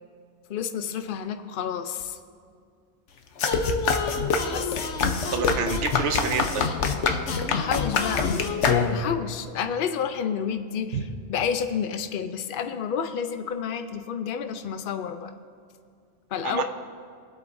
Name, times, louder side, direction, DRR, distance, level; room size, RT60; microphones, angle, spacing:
voice 1, 0.5-2.2 4.5-4.9 7.5-15.3 16.3-16.6, left 7 dB, 55° left, 8 dB, 0.7 m, -30 dB
sound 1, 3.4-9.2, left 5 dB, 80° left, 1.1 m, -25 dB
voice 2, 5.3-6.6 10.9-11.0 16.4-16.6, right 6 dB, 85° right, 7 dB, 1.1 m, -28 dB
23.5 x 8.2 x 2.6 m, 2.3 s
omnidirectional pair, 1.2 m